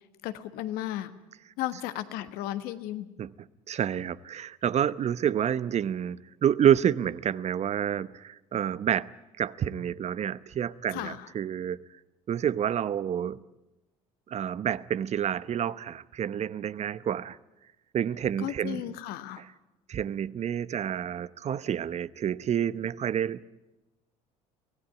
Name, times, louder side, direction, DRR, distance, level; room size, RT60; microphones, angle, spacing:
voice 1, 0.2-1.1 1.6-3.1 10.9-11.3 18.4-19.4, left 13 dB, 65° left, 1.4 m, -34 dB
voice 2, 3.7-9.1 9.4-11.8 12.3-13.4 14.3-17.4 17.9-18.8 19.4-19.5 19.9-23.4, right 9 dB, 40° right, 0.8 m, -28 dB
24.5 x 17.0 x 9.4 m
hypercardioid pair, 65°, 17 cm